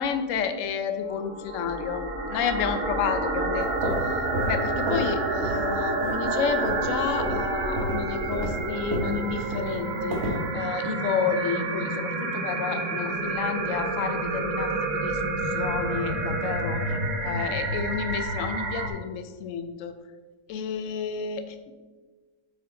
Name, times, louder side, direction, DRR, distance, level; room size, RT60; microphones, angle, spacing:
voice 1, 0.0-4.2 4.5-15.2 15.5-16.8 17.2-19.9 20.5-21.7, left 7 dB, 70° left, 8 dB, 0.7 m, -31 dB
sound 1, 1.0-18.9, right 2 dB, 55° right, 1.2 m, -29 dB
sound 2, 3.6-5.2 5.4-5.7 6.0-6.9 7.2-7.4 7.8-10.5, equal, 40° right, 1.4 m, -31 dB
8.3 x 4.5 x 3.8 m, 1.3 s
omnidirectional pair, 2.0 m